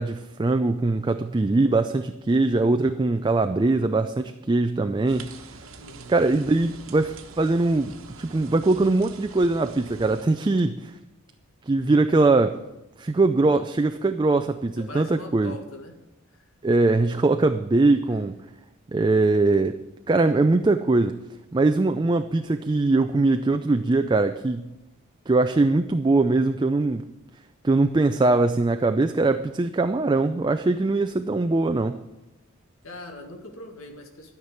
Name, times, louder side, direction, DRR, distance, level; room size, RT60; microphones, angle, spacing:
voice 1, 0.0-5.3 6.1-11.0 11.7-12.6 13.0-15.6 16.6-18.3 18.9-21.2 21.5-24.7 25.3-27.0 27.6-32.0, right 2 dB, 20° right, 8 dB, 0.4 m, -22 dB
sound 1, 5.1-10.2, right 4 dB, 70° right, 1.1 m, -45 dB
voice 2, 5.8-6.3 14.8-15.9 16.3-16.5 32.8-34.3, left 1 dB, 70° left, 3 dB, 1.8 m, -41 dB
13.0 x 5.9 x 9.4 m, 0.97 s
head